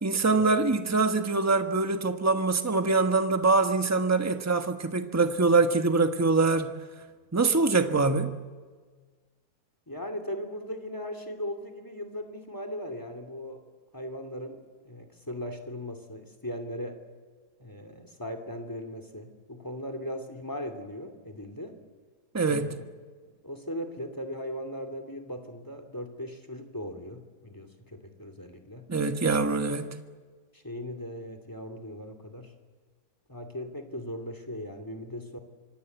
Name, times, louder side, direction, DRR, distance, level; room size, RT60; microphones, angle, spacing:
voice 1, 0.0-6.7 7.3-8.4 22.3-22.8 28.9-29.9, right 3 dB, 10° right, 1.1 m, -24 dB
voice 2, 9.9-13.6 13.9-14.6 14.8-17.0 17.6-21.8 22.4-22.8 23.2-28.9 30.5-32.5 33.3-35.4, equal, 10° left, 2.6 m, -38 dB
25.5 x 25.0 x 8.0 m
omnidirectional pair, 1.7 m